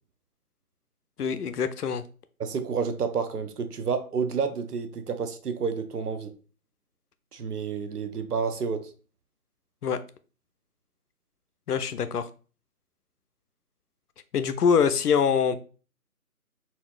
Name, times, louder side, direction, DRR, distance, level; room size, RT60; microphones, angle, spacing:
voice 1, 1.2-2.0 9.8-10.0 11.7-12.3 14.3-15.6, left 6 dB, 85° left, 0.5 m, -24 dB
voice 2, 2.4-6.3 7.3-8.9, right 5 dB, 90° right, 0.7 m, -30 dB
4.0 x 2.0 x 2.3 m
figure-of-eight pair, 165°, 45 cm